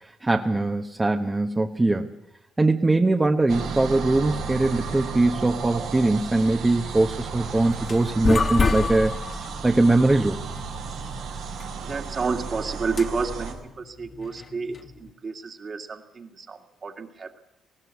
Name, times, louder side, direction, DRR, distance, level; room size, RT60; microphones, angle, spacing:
voice 1, 0.0-2.1 2.6-9.1 9.4-10.4, right 2 dB, 20° right, 4 dB, 1.1 m, -22 dB
sound 1, 3.5-13.5, right 5 dB, 90° right, 4.5 m, -34 dB
sound 2, 7.6-15.1, left 4 dB, 40° left, 1.3 m, -29 dB
voice 2, 11.8-17.4, right 4 dB, 45° right, 4 dB, 2.2 m, -31 dB
19.0 x 16.5 x 8.3 m, 0.88 s
cardioid pair, 90°, 0 cm